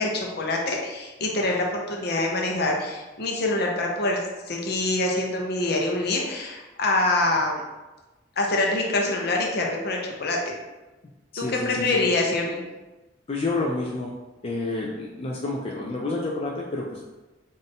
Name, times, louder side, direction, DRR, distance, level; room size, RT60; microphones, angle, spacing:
voice 1, 0.0-4.2 4.5-7.6 8.4-10.6 11.4-12.6, left 2 dB, 60° left, 0 dB, 0.7 m, -25 dB
voice 2, 11.3-12.1 13.3-14.2 14.4-17.0, left 2 dB, 30° left, -2 dB, 0.4 m, -29 dB
3.9 x 2.6 x 3.6 m, 1.1 s
head